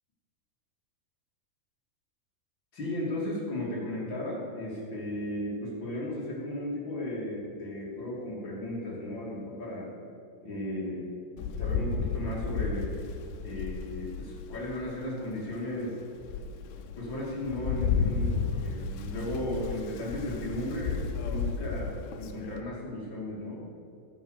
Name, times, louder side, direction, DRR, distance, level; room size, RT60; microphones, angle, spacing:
voice 1, 2.7-9.9 10.4-11.1 11.6-12.9 13.4-16.0 17.0-23.7, left 1 dB, 35° left, -5 dB, 2.2 m, -35 dB
Rain, 11.4-14.9 15.4-15.5 16.0-22.6, left 5 dB, 80° left, 2.6 m, -33 dB
12.5 x 8.5 x 6.5 m, 2.6 s
omnidirectional pair, 5.5 m